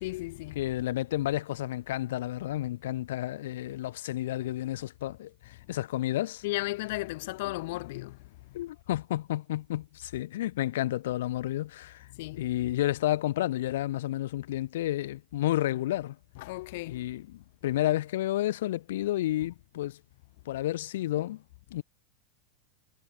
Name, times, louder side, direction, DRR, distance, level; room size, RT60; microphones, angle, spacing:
voice 1, 0.0-0.6 6.4-8.2 8.5-8.6 12.1-12.4 16.4-17.1, left 21 dB, 55° left, 0.8 m, -35 dB
voice 2, 0.5-6.4 8.5-12.1 12.3-16.2 16.9-20.0 20.4-21.4 21.7-21.8, left 14 dB, 80° left, 1.6 m, -31 dB
supercardioid pair, 175°, 0 cm